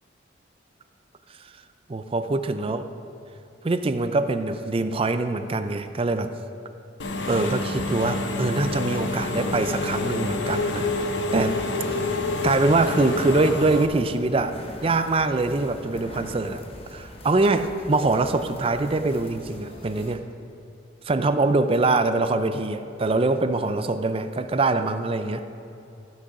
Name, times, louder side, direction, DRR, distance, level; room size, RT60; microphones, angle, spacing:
voice 1, 1.9-2.9 3.6-6.3 7.3-11.6 11.9-12.0 12.4-16.6 16.9-20.2 21.1-25.4, right 3 dB, 30° right, 9 dB, 0.4 m, -24 dB
Engine / Mechanisms, 7.0-13.9, left 2 dB, 70° left, 0.8 m, -28 dB
sound 1, 8.4-20.2, left 1 dB, 30° left, 0.8 m, -44 dB
14.5 x 6.2 x 4.8 m, 2.7 s
head